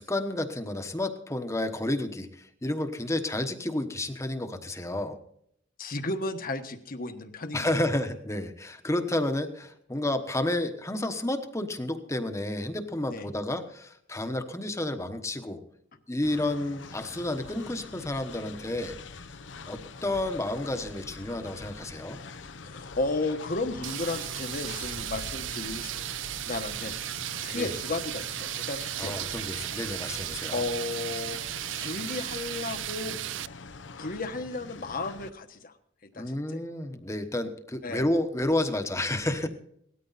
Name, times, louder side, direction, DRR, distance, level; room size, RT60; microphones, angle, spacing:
voice 1, 0.0-5.2 7.5-15.6 16.1-19.0 19.7-22.2 27.5-27.7 29.0-30.6 36.1-39.5, left 1 dB, 15° left, 7 dB, 1.1 m, -31 dB
voice 2, 5.8-7.7 13.1-13.3 22.6-25.9 26.4-26.9 27.4-29.1 30.5-31.4 31.8-33.2 34.0-35.7 36.1-36.6 37.8-38.0, left 2 dB, 50° left, 7 dB, 1.3 m, -33 dB
Train, 16.2-35.3, left 4 dB, 75° left, 0.8 m, -45 dB
sound 1, 23.8-33.5, right 13 dB, 90° right, 0.5 m, -35 dB
18.0 x 13.5 x 4.1 m, 0.69 s
head